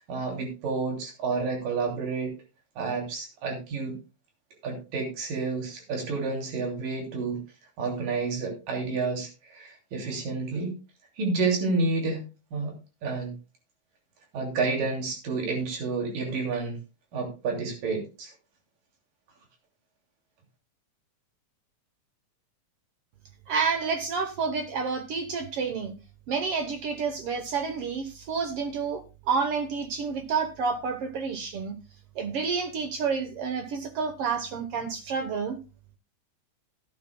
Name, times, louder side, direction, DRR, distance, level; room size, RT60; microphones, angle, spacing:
voice 1, 0.1-2.3 2.8-4.0 4.6-7.4 7.8-10.8 11.2-13.4 14.3-16.8 17.1-18.3, right 4 dB, 85° right, 2 dB, 4.5 m, -30 dB
voice 2, 23.5-25.9 26.3-31.8 32.1-35.6, right 5 dB, 65° right, 7 dB, 1.5 m, -29 dB
16.5 x 9.7 x 2.2 m, 0.30 s
omnidirectional pair, 3.7 m